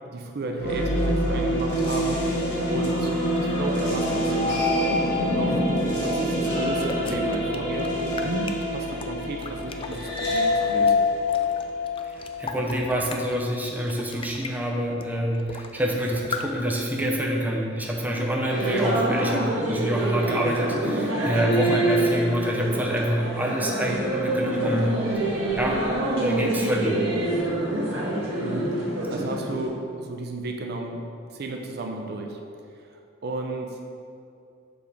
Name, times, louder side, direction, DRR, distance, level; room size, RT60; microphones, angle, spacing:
voice 1, 0.1-2.3 2.7-3.1 3.4-5.0 5.3-5.7 6.0-11.0 28.4-32.4 33.2-33.9, right 2 dB, 55° right, 3 dB, 0.5 m, -33 dB
sound 1, 0.6-12.7, left 1 dB, 60° left, 1.5 m, -25 dB
sound 2, 5.7-10.4 10.8-13.4 13.8-14.5 15.0-15.1 15.3-15.8 16.1-16.5, left 4 dB, 25° left, 0.3 m, -38 dB
voice 2, 12.1-24.9 25.5-25.8 26.2-27.0, equal, 10° right, -2 dB, 0.6 m, -26 dB
sound 3, 18.5-29.7, right 1 dB, 75° right, 1.5 m, -26 dB
7.0 x 3.5 x 5.3 m, 2.5 s
head